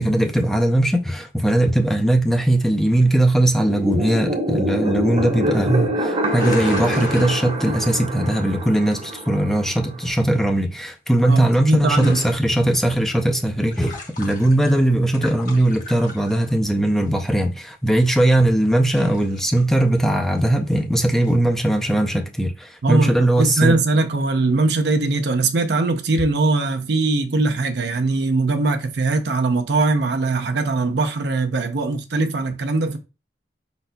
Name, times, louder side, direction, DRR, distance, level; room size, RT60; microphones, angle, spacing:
voice 1, 0.0-23.8, right 1 dB, ahead, 0.4 m, -19 dB
sound 1, 3.6-10.1, right 1 dB, 30° right, 0.7 m, -26 dB
sound 2, 6.3-7.9 11.8-12.3 13.5-14.8 15.1-16.5 17.9-18.1 18.7-19.6 20.0-20.1 20.4-20.5 21.1-21.3, left 1 dB, 45° left, 1.2 m, -32 dB
voice 2, 11.2-12.2 22.8-33.0, right 3 dB, 65° right, 0.6 m, -21 dB
5.3 x 4.1 x 2.2 m
head